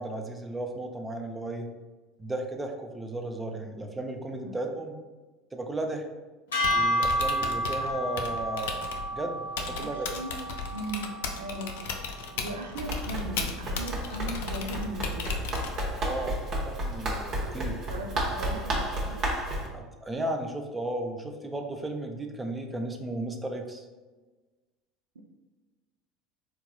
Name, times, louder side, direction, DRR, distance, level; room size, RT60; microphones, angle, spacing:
voice 1, 0.0-1.7 2.2-4.9 5.5-6.1 6.7-8.9 9.1-10.1 16.0-16.4 16.7-17.7 19.7-23.9, right 1 dB, 15° right, 4 dB, 0.5 m, -34 dB
sound 1, 6.5-12.9, equal, 90° left, 0.9 m, -31 dB
Typing, 6.5-16.1, left 5 dB, 75° left, 0.4 m, -37 dB
voice 2, 9.8-10.3 10.7-11.7 12.3-15.5 16.2-16.3 17.4-19.3 25.2-25.3, right 2 dB, 85° right, 3 dB, 0.3 m, -38 dB
Run, 12.8-19.7, right 1 dB, 50° right, 0.8 m, -32 dB
3.8 x 2.8 x 2.3 m, 1.3 s
hypercardioid pair, 75°, 0 cm